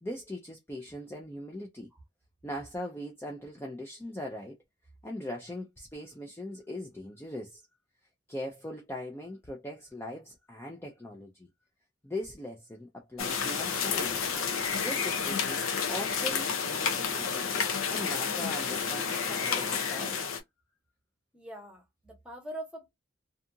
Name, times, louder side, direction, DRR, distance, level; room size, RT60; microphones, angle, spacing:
voice 1, 0.0-1.9 2.4-4.6 5.0-7.7 8.3-11.5 12.0-14.3 14.7-20.3, left 1 dB, 10° left, 0.4 m, -40 dB
sound 1, 13.2-20.4, left 6 dB, 85° left, 0.7 m, -30 dB
voice 2, 21.3-22.9, right 1 dB, 5° right, 0.9 m, -42 dB
2.7 x 2.3 x 2.6 m
head